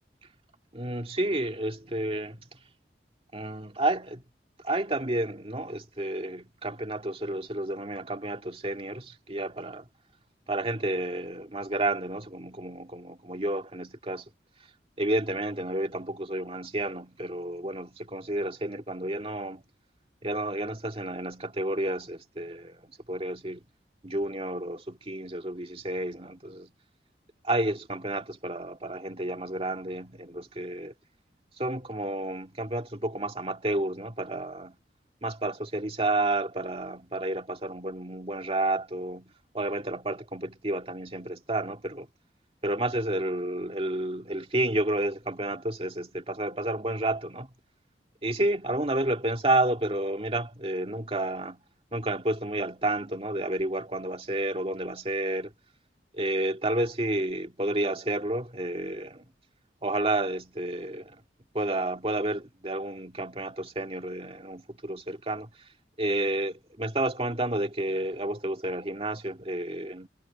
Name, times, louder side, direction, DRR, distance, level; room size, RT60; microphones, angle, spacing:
voice 1, 0.7-2.4 3.3-4.2 4.6-9.9 10.5-14.3 15.0-19.6 20.2-23.6 24.0-26.7 27.4-30.9 31.6-34.8 35.2-42.1 42.6-47.5 48.2-51.6 51.9-55.5 56.1-59.3 59.8-61.2 61.5-65.5 66.0-70.1, right 1 dB, 35° right, 2.3 m, -30 dB
head